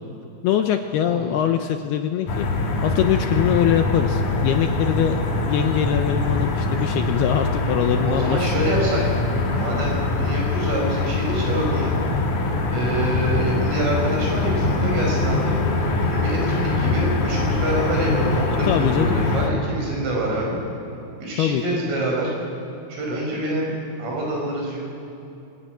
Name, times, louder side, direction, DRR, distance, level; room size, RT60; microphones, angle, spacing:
voice 1, 0.4-2.5 2.8-8.7 18.7-19.2 21.4-21.8, left 10 dB, 80° left, 6 dB, 2.4 m, -23 dB
voice 2, 1.1-1.4 8.0-9.0 9.5-11.9 12.7-15.6 16.0-20.6 21.2-22.3 22.9-23.7 24.0-24.8, right 1 dB, 90° right, -1 dB, 8.0 m, -26 dB
sound 1, 2.3-19.5, left 2 dB, 50° left, 3.2 m, -23 dB
24.5 x 20.0 x 9.4 m, 2.8 s
omnidirectional pair, 5.4 m